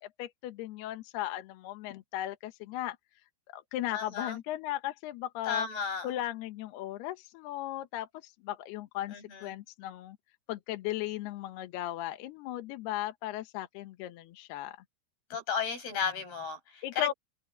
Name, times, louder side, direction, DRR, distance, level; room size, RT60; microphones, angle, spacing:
voice 1, 0.0-3.0 3.5-5.7 6.0-10.2 10.5-14.8 16.8-17.1, left 14 dB, 75° left, 2.6 m, -37 dB
voice 2, 3.9-4.4 5.5-6.1 9.1-9.5 15.3-17.1, left 6 dB, 55° left, 9.5 m, -34 dB
omnidirectional pair, 5.6 m